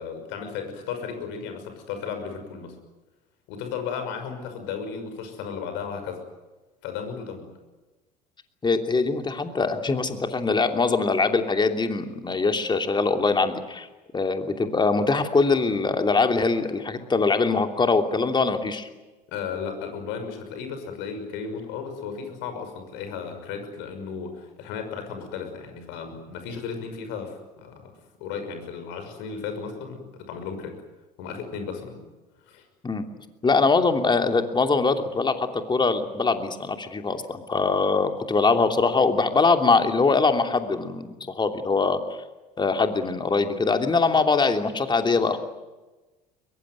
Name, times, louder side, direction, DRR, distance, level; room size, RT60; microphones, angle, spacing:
voice 1, 0.0-2.7 3.5-6.2 6.8-7.5 19.3-30.8 31.2-32.0 32.5-32.6, left 6 dB, 60° left, 7 dB, 6.1 m, -34 dB
voice 2, 8.6-13.9 14.1-18.9 32.8-33.0 33.4-41.1 41.3-42.0 42.6-45.4, left 4 dB, 20° left, 6 dB, 3.0 m, -22 dB
23.0 x 22.5 x 9.5 m, 1.1 s
figure-of-eight pair, 65°, 21 cm